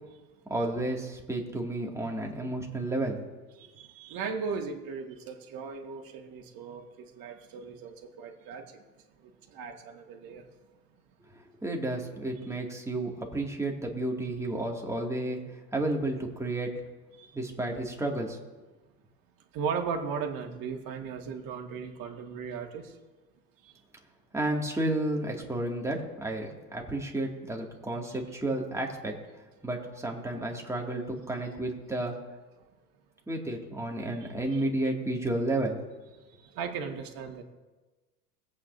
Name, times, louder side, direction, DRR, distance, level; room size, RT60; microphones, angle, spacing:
voice 1, 0.5-3.2 11.6-16.7 17.3-18.4 24.3-29.2 29.6-32.2 33.3-35.8, right 1 dB, 5° right, 0 dB, 2.3 m, -32 dB
voice 2, 3.6-8.8 9.2-10.5 17.2-17.4 19.5-23.0 23.6-23.7 34.2-34.3 36.2-37.4, right 6 dB, 45° right, 3 dB, 2.1 m, -37 dB
21.5 x 8.6 x 2.7 m, 1.2 s
figure-of-eight pair, 80°, 48 cm